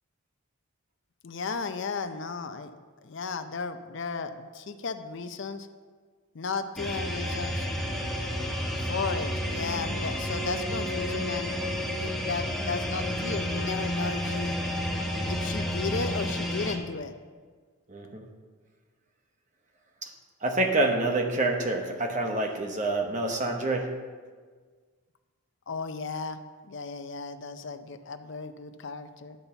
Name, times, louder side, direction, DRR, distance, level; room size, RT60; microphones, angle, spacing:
voice 1, 1.2-2.7 3.0-5.7 6.3-7.7 8.8-11.6 11.8-14.6 15.2-17.1 25.7-26.4 26.7-29.4, left 4 dB, 55° left, 9 dB, 0.5 m, -34 dB
sound 1, 6.8-16.8, equal, ahead, 0.9 m, -31 dB
voice 2, 17.9-18.2 20.0-20.1 20.4-23.9, right 2 dB, 35° right, 4 dB, 0.9 m, -27 dB
10.5 x 4.2 x 6.8 m, 1.6 s
head